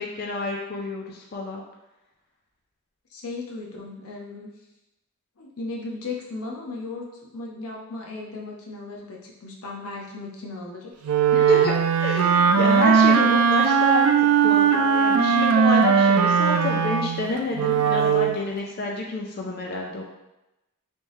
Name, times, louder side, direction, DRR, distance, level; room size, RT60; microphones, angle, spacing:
voice 1, 0.0-1.6 11.3-11.7 12.0-14.1 14.4-20.0, left 2 dB, 45° left, -1 dB, 0.4 m, -28 dB
voice 2, 3.1-4.5 5.4-7.1 7.3-10.9, left 3 dB, 90° left, -1 dB, 0.8 m, -36 dB
Wind instrument woodwind instrument, 11.0-18.4, right 6 dB, 90° right, 0.3 m, -19 dB
3.4 x 2.7 x 3.0 m, 0.95 s
head